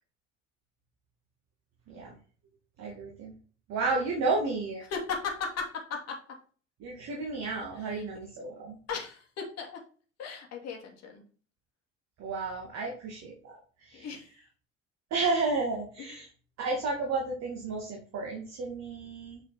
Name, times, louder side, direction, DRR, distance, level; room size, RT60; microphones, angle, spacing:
voice 1, 2.8-3.3 3.7-4.8 6.8-8.8 12.2-14.1 15.1-16.3 16.6-19.4, right 3 dB, 45° right, -1 dB, 2.4 m, -32 dB
voice 2, 4.8-6.2 7.7-8.0 8.9-9.8 10.2-11.3 13.9-14.4 16.0-16.3, left 5 dB, 45° left, 1 dB, 2.6 m, -37 dB
8.2 x 5.5 x 4.4 m, 0.40 s
figure-of-eight pair, 60°, 36 cm